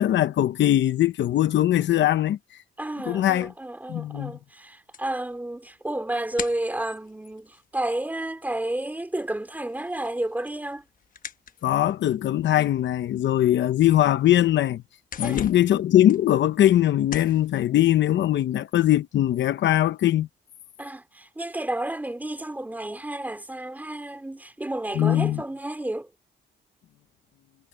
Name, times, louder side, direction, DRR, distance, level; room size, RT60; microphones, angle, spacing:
voice 1, 0.0-2.4 3.1-3.5 3.9-4.3 11.6-14.8 15.2-20.3 24.9-25.4, left 12 dB, 70° left, 0.8 m, -21 dB
voice 2, 2.8-10.8 15.2-15.4 20.8-26.1, right 1 dB, 10° right, 2.8 m, -31 dB
sound 1, 4.9-8.6 8.9-12.1 12.9-13.0 13.4-13.5 13.9-14.5 14.8-16.8 17.1-17.5, left 7 dB, 45° left, 1.0 m, -40 dB
cardioid pair, 135°, 19 cm